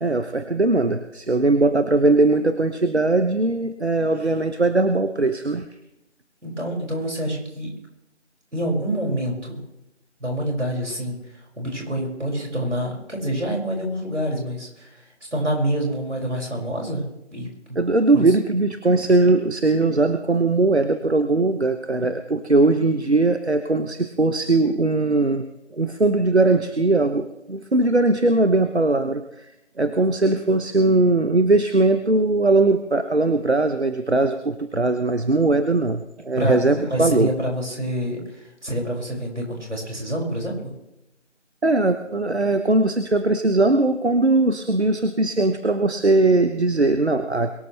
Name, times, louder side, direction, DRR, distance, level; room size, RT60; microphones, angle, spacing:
voice 1, 0.0-5.7 17.7-25.4 25.7-29.5 29.8-37.3 41.6-47.5, right 2 dB, 65° right, 9 dB, 1.1 m, -20 dB
voice 2, 6.4-7.7 8.5-9.6 10.2-17.8 18.1-18.2 36.4-40.7, right 1 dB, 80° right, -1 dB, 6.2 m, -27 dB
22.5 x 12.5 x 3.4 m, 0.89 s
figure-of-eight pair, 175°, 35 cm